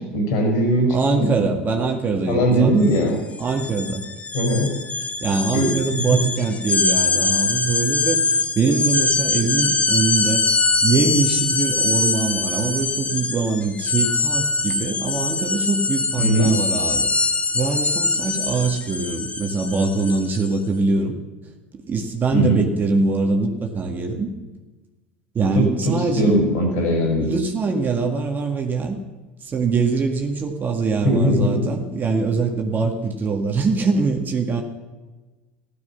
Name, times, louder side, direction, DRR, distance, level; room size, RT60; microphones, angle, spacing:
voice 1, 0.1-1.4 2.3-3.2 4.3-4.7 5.5-5.7 6.1-6.2 16.2-16.5 22.3-22.6 25.6-27.3 31.0-31.7, equal, 60° left, 2 dB, 5.2 m, -20 dB
voice 2, 0.9-2.9 3.4-4.0 5.2-10.4 10.8-21.2 21.9-24.3 25.3-26.4 27.2-29.0 29.4-34.6, right 4 dB, 30° right, 3 dB, 1.9 m, -23 dB
sound 1, 2.8-3.0 3.3-20.5, left 3 dB, 20° left, 1.5 m, -23 dB
16.0 x 12.0 x 5.9 m, 1.2 s
hypercardioid pair, 75°, 6 cm